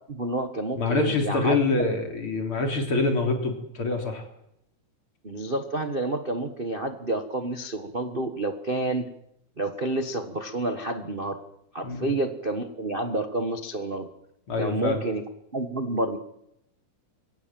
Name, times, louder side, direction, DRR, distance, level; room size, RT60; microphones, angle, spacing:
voice 1, 0.1-1.9 5.2-9.1 9.6-11.4 11.7-14.1 14.6-15.2 15.5-16.2, right 2 dB, 70° right, 6 dB, 0.5 m, -29 dB
voice 2, 0.8-4.2 11.8-12.1 14.5-15.0, left 3 dB, 40° left, 3 dB, 4.2 m, -25 dB
23.5 x 18.0 x 7.7 m, 0.79 s
omnidirectional pair, 3.6 m